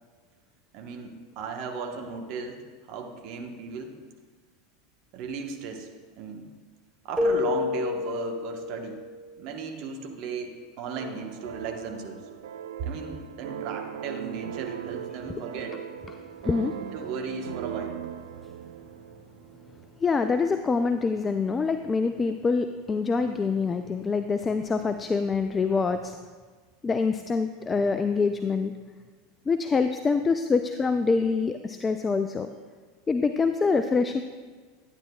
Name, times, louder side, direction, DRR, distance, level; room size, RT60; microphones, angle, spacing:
voice 1, 0.7-2.6 2.9-4.0 5.1-5.9 6.2-6.5 7.0-9.0 9.4-12.2 12.8-15.8 16.9-18.0, right 5 dB, 50° right, 3 dB, 1.2 m, -36 dB
Keyboard (musical), 7.2-9.2, left 4 dB, ahead, 0.9 m, -28 dB
sound 1, 10.9-20.0, right 10 dB, 70° right, 0.4 m, -39 dB
voice 2, 16.4-16.8 20.0-26.2 26.8-28.7 29.5-32.5 33.1-34.2, left 4 dB, 20° left, 9 dB, 0.4 m, -25 dB
11.5 x 9.6 x 2.3 m, 1.5 s
figure-of-eight pair, 80°, 0 cm